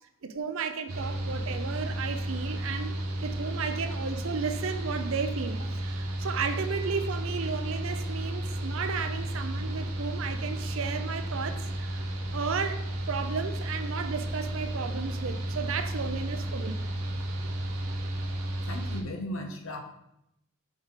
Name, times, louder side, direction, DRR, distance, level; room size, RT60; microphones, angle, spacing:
voice 1, 0.2-12.1 12.3-16.8, right 5 dB, 65° right, 8 dB, 0.6 m, -34 dB
Mechanical fan, 0.9-19.0, right 1 dB, 85° right, 1.0 m, -33 dB
voice 2, 18.7-19.8, left 1 dB, 65° left, 4 dB, 0.9 m, -36 dB
5.4 x 4.7 x 4.0 m, 0.81 s
head